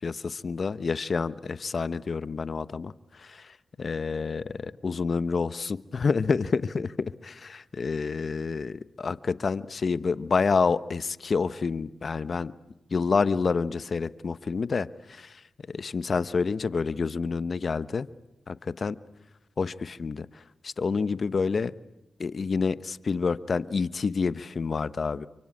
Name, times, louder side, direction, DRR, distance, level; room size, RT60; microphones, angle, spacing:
voice 1, 0.0-2.9 3.2-3.5 3.8-6.9 7.2-12.5 12.9-15.4 15.7-18.1 18.5-19.0 19.6-20.3 20.6-21.7 22.2-25.3, left 5 dB, 55° left, 15 dB, 1.0 m, -28 dB
28.5 x 24.5 x 8.6 m, 0.92 s
supercardioid pair, 45°, 0 cm